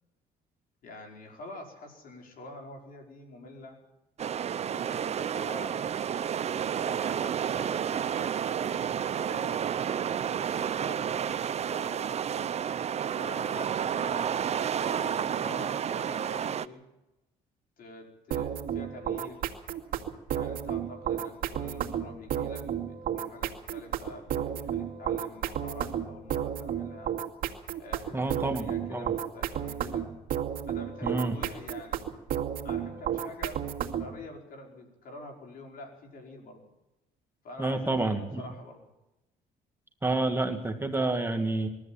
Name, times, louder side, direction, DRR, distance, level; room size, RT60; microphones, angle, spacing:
voice 1, 0.8-3.8 4.7-5.8 6.7-9.6 10.5-12.1 13.1-16.8 17.8-19.4 20.3-27.1 27.8-30.1 30.6-32.1 32.6-33.6 33.9-36.7 37.4-38.9, left 2 dB, 55° left, 2 dB, 5.0 m, -46 dB
sound 1, 4.2-16.7, right 8 dB, 40° right, 0.7 m, -30 dB
sound 2, 18.3-34.2, right 9 dB, 55° right, 2.5 m, -32 dB
voice 2, 28.1-29.1 31.0-31.4 37.6-38.4 40.0-41.7, right 2 dB, 15° right, 4 dB, 2.1 m, -29 dB
22.0 x 14.0 x 8.8 m, 0.97 s
cardioid pair, 110°, 17 cm